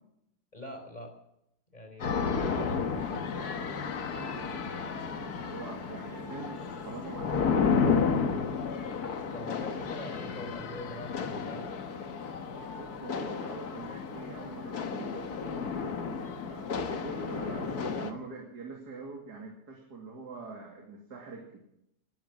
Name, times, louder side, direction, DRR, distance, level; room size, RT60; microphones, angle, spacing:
voice 1, 0.5-1.1 1.7-3.0 9.1-11.8 17.6-17.8, left 1 dB, 25° left, 4 dB, 4.3 m, -44 dB
sound 1, 2.0-18.1, left 5 dB, 70° left, 1.9 m, -32 dB
voice 2, 2.3-8.0 12.7-21.6, right 4 dB, 75° right, 0 dB, 3.2 m, -45 dB
18.5 x 12.5 x 6.2 m, 0.78 s
omnidirectional pair, 1.7 m